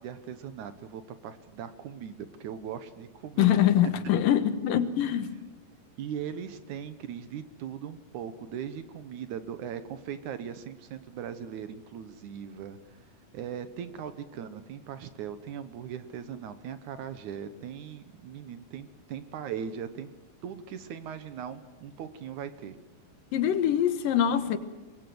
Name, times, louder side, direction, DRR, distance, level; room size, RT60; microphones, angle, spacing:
voice 1, 0.0-3.5 6.0-13.0 13.3-20.1 20.4-22.8, right 8 dB, 65° right, 2.2 m, -39 dB
voice 2, 3.4-5.3 23.3-24.6, left 10 dB, 75° left, 2.9 m, -24 dB
24.5 x 21.0 x 7.8 m
omnidirectional pair, 4.1 m